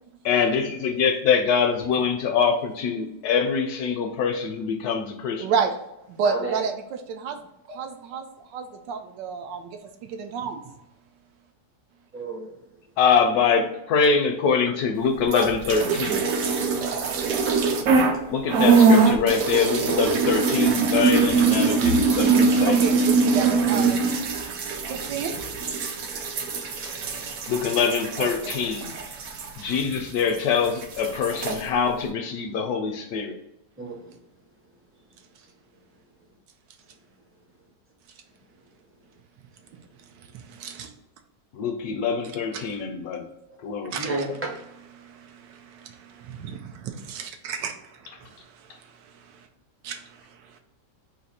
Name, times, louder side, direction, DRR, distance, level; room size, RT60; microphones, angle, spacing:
voice 1, 0.2-5.5 13.0-16.3 18.3-22.9 27.5-28.9 29.6-33.4 41.5-43.2 43.6-44.0 44.3-44.4, left 6 dB, 70° left, 5 dB, 1.0 m, -24 dB
voice 2, 5.4-5.8 6.1-7.4 7.7-8.3 8.5-10.6 22.7-24.2 24.7-25.4 28.2-28.7 40.2-40.9 42.5-42.8 43.9-44.3 44.9-49.5 49.8-50.6, right 6 dB, 90° right, 6 dB, 1.3 m, -32 dB
voice 3, 6.2-6.6 12.1-12.5 16.5-17.1 17.5-17.6 23.7-23.9 26.8-27.0 33.8-34.1 44.0-44.3, right 3 dB, 20° right, -2 dB, 0.3 m, -33 dB
sound 1, 15.2-18.2 18.5-30.4 30.7-31.6, right 4 dB, 65° right, 0.9 m, -22 dB
4.0 x 2.6 x 4.1 m, 0.88 s
omnidirectional pair, 1.9 m